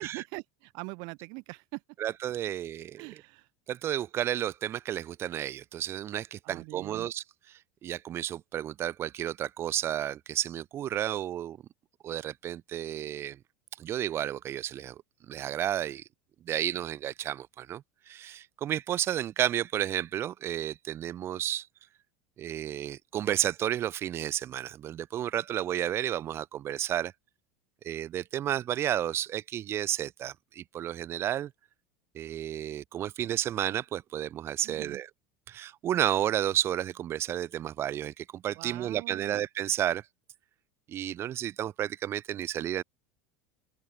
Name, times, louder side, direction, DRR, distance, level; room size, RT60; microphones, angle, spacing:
voice 1, 0.0-1.8 3.0-3.5 6.4-7.1 34.6-35.0 38.6-39.4, right 31 dB, 65° right, 2.2 m, -42 dB
voice 2, 2.0-3.0 3.7-11.6 12.0-13.4 13.8-15.0 15.3-16.0 16.5-21.7 22.4-27.1 27.8-31.5 32.1-35.1 35.5-40.0 40.9-42.8, right 11 dB, 35° right, 0.6 m, -32 dB
open air
supercardioid pair, 110°, 7 cm